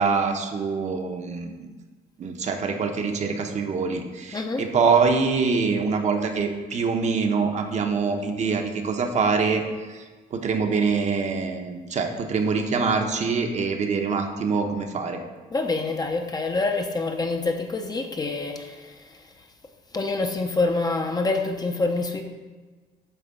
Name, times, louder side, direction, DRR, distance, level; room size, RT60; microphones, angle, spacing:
voice 1, 0.0-1.7 2.2-9.6 9.9-10.0 10.3-15.2, right 5 dB, 45° right, 4 dB, 1.0 m, -24 dB
voice 2, 4.3-4.6 15.5-19.3 19.9-22.2, left 3 dB, 25° left, 4 dB, 0.8 m, -26 dB
9.0 x 3.5 x 6.5 m, 1.3 s
cardioid pair, 110°, 17 cm